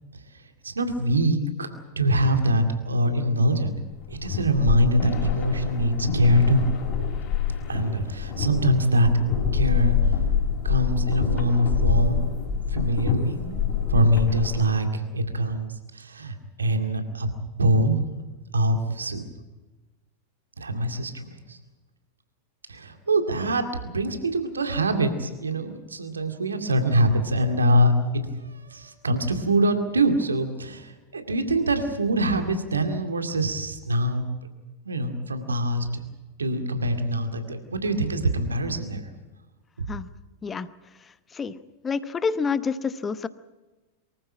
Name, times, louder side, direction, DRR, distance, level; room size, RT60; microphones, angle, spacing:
voice 1, 0.6-1.7 2.0-3.7 4.2-6.6 7.7-9.1 9.5-10.2 10.6-13.6 13.9-17.3 17.6-18.0 18.5-19.2 20.6-21.6 22.7-27.9 28.4-34.3 34.9-36.0 36.4-39.0, right 1 dB, 75° right, 6 dB, 2.2 m, -24 dB
sound 1, 3.9-14.7, left 7 dB, 35° left, 4.8 m, -26 dB
voice 2, 41.8-43.3, left 5 dB, 20° left, 15 dB, 0.9 m, -27 dB
23.5 x 15.0 x 8.9 m, 1.2 s
figure-of-eight pair, 90°, 0 cm